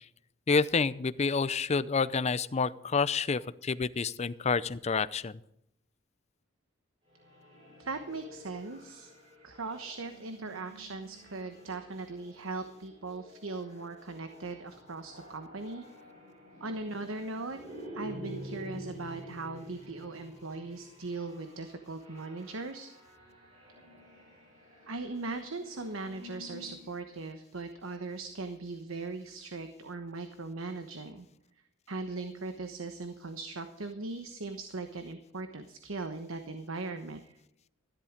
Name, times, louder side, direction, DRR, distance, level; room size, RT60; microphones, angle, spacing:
voice 1, 0.5-5.3, left 5 dB, 35° left, 16 dB, 0.5 m, -28 dB
sound 1, 7.1-26.9, right 1 dB, 35° right, 5.9 m, -50 dB
voice 2, 7.8-9.1 9.4-15.8 16.6-17.6 17.9-22.9 24.9-31.3 31.9-37.4, right 3 dB, 85° right, 8 dB, 1.1 m, -39 dB
13.5 x 11.5 x 5.1 m, 0.78 s
head